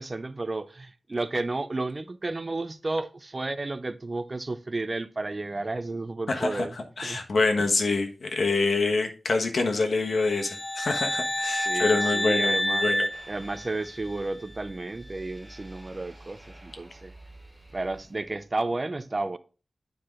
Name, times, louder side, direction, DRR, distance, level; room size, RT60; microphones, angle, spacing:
voice 1, 0.0-6.8 7.0-7.2 11.6-12.9 13.3-17.1 17.7-19.4, right 2 dB, 35° right, 0.5 m, -32 dB
voice 2, 6.3-6.7 7.0-13.1, left 3 dB, 65° left, 1.2 m, -26 dB
sound 1, 10.1-14.1, left 1 dB, 20° left, 0.5 m, -28 dB
sound 2, 13.1-18.6, right 1 dB, 10° right, 0.9 m, -49 dB
9.3 x 4.7 x 3.7 m
wide cardioid pair, 105°, 0 cm